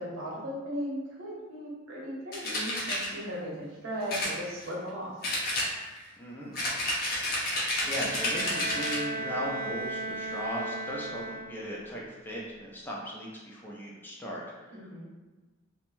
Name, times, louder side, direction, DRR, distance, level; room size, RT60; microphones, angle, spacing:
voice 1, 0.0-5.1 14.7-15.1, equal, 80° right, -5 dB, 0.8 m, -37 dB
sound 1, 2.3-3.1 4.1-4.9 5.2-6.1 6.5-9.1, left 1 dB, 50° left, 0.6 m, -30 dB
voice 2, 6.2-6.6 7.4-14.8, equal, 10° left, -4 dB, 0.4 m, -38 dB
Bowed string instrument, 7.7-11.8, right 1 dB, 50° right, 0.5 m, -36 dB
2.6 x 2.1 x 3.0 m, 1.2 s
head